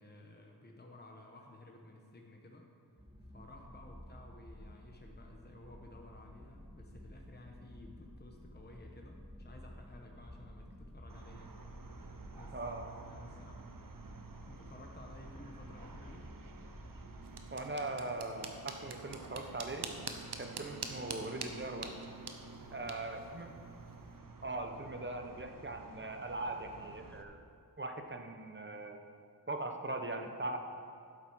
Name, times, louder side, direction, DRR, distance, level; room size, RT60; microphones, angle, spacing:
voice 1, 0.0-2.7 3.3-12.7 13.0-13.7 14.5-16.3 22.6-23.1, left 2 dB, 25° left, 1 dB, 1.1 m, -55 dB
sound 1, 3.0-17.4, equal, 10° right, 1.3 m, -53 dB
sound 2, 11.1-27.2, right 4 dB, 55° right, 0.9 m, -52 dB
voice 2, 12.5-12.9 17.5-19.9 20.4-22.0 22.7-23.6 24.4-27.4 27.8-29.0 29.5-30.6, right 2 dB, 30° right, 4 dB, 1.0 m, -40 dB
sound 3, 17.2-24.2, right 4 dB, 85° right, 0.9 m, -46 dB
11.5 x 8.1 x 4.7 m, 2.4 s
wide cardioid pair, 45°, 39 cm